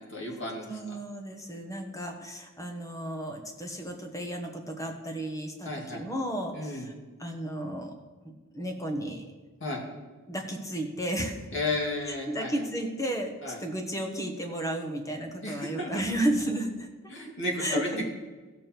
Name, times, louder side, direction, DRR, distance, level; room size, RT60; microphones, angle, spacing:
voice 1, 0.0-0.7 5.6-6.0 6.5-6.9 9.6-9.8 11.5-12.7 13.4-13.6 15.4-16.0 17.1-18.1, left 2 dB, 60° left, -1 dB, 2.4 m, -33 dB
voice 2, 0.7-6.9 7.2-7.9 8.5-9.3 10.3-11.5 12.3-16.9 17.6-18.1, right 1 dB, 15° left, 3 dB, 1.3 m, -33 dB
15.5 x 6.9 x 4.6 m, 1.3 s
head